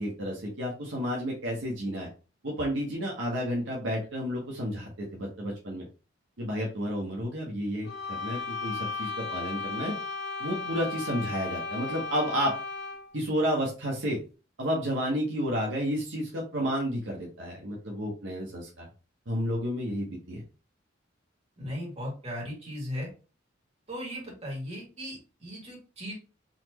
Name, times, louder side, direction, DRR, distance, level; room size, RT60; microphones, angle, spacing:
voice 1, 0.0-2.1 2.4-5.9 6.4-9.9 10.4-12.5 13.1-14.2 14.6-18.9 19.3-20.4, equal, 70° right, -3 dB, 1.1 m, -31 dB
sound 1, 7.8-13.1, left 4 dB, 60° left, 1.1 m, -35 dB
voice 2, 21.6-23.1 23.9-26.1, equal, 35° right, -3 dB, 2.1 m, -37 dB
4.2 x 3.0 x 2.9 m, 0.34 s
head